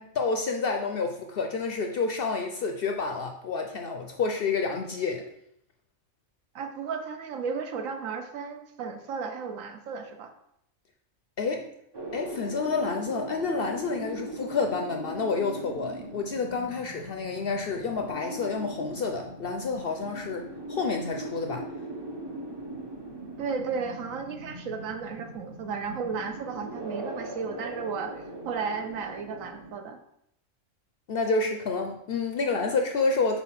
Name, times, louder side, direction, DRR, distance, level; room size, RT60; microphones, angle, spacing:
voice 1, 0.0-5.3 11.4-11.7 12.1-21.7 31.1-33.4, left 4 dB, 60° left, 4 dB, 0.6 m, -29 dB
voice 2, 6.5-10.3 23.4-30.0, right 5 dB, 75° right, 7 dB, 1.1 m, -34 dB
sound 1, 11.9-29.7, right 1 dB, 25° right, 0.7 m, -40 dB
4.2 x 4.1 x 5.6 m, 0.76 s
omnidirectional pair, 1.4 m